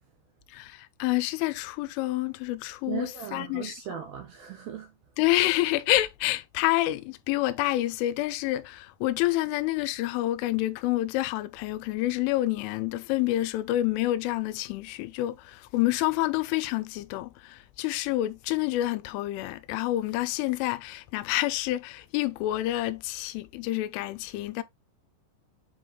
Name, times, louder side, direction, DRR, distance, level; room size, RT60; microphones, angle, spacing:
voice 1, 0.5-3.8 5.2-24.6, left 16 dB, 85° left, 3.1 m, -28 dB
voice 2, 2.9-4.9, right 8 dB, 70° right, 2.4 m, -37 dB
7.9 x 3.9 x 3.1 m
omnidirectional pair, 5.6 m